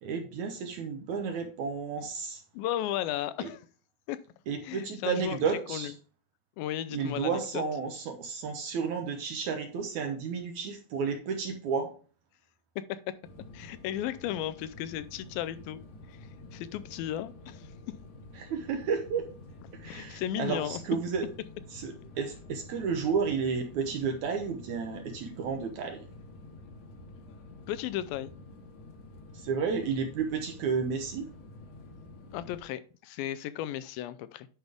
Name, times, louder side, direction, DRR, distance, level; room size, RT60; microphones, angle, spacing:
voice 1, 0.0-2.4 3.4-3.5 4.5-5.9 6.9-11.9 18.3-19.3 19.8-21.3 21.7-26.0 29.3-31.3, right 5 dB, 75° right, 5 dB, 1.8 m, -32 dB
voice 2, 2.5-3.6 4.1-4.2 4.6-5.4 5.7-5.9 6.6-7.6 12.8-13.1 13.5-15.8 16.1-16.2 16.5-17.7 19.9-20.8 27.7-28.3 32.3-34.5, left 12 dB, 80° left, 14 dB, 2.3 m, -35 dB
sound 1, 13.2-32.6, left 2 dB, 60° left, 1.9 m, -49 dB
10.5 x 5.2 x 3.4 m, 0.39 s
omnidirectional pair, 4.3 m